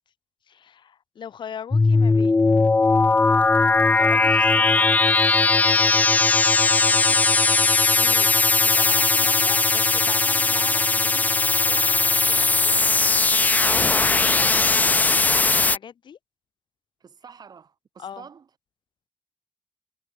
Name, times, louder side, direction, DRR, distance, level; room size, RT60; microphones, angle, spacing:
voice 1, 0.5-2.4 4.0-5.0 6.8-7.2 7.9-8.3 8.6-12.6 13.4-13.5 14.1-16.2 18.0-18.2, left 8 dB, 85° left, 1.3 m, -39 dB
sound 1, 1.7-15.8, left 3 dB, 20° left, 0.3 m, -19 dB
voice 2, 8.0-8.4 17.0-18.6, right 6 dB, 60° right, 5.2 m, -47 dB
wide cardioid pair, 170°, 8 cm